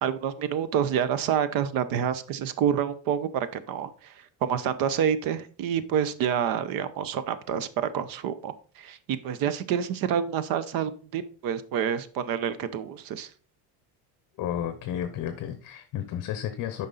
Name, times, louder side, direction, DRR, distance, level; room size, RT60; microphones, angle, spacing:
voice 1, 0.0-4.1 4.4-13.3, right 8 dB, 50° right, 14 dB, 0.9 m, -28 dB
voice 2, 14.4-16.9, left 10 dB, 45° left, 9 dB, 0.9 m, -32 dB
8.9 x 5.5 x 4.0 m, 0.39 s
cardioid pair, 145°, 43 cm